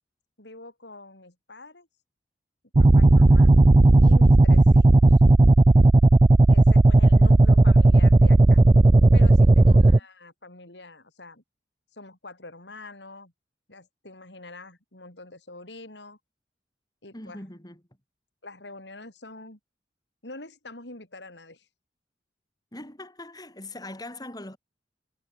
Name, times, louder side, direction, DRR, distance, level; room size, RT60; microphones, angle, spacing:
voice 1, 0.4-1.9 2.8-3.5 4.0-5.2 6.5-8.6 9.1-11.4 11.9-13.3 13.7-16.2 17.0-17.4 18.4-19.6 20.2-21.7, left 2 dB, 80° left, 7.4 m, -45 dB
sound 1, 2.7-10.0, right 2 dB, 30° right, 0.5 m, -15 dB
voice 2, 17.1-17.8 22.7-24.6, left 1 dB, 25° left, 5.6 m, -41 dB
head